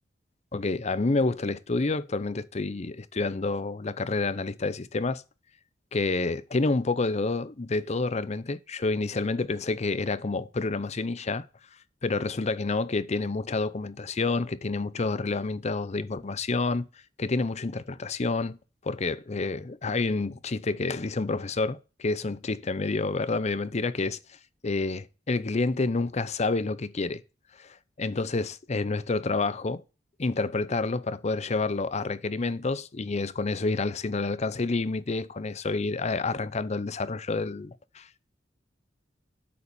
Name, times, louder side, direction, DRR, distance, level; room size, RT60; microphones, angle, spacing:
voice 1, 0.5-5.2 5.9-11.5 12.0-16.9 17.2-18.6 18.8-24.2 24.6-27.2 27.6-29.8 30.2-38.3, left 3 dB, 40° left, 0.6 m, -29 dB
8.5 x 7.1 x 6.9 m
head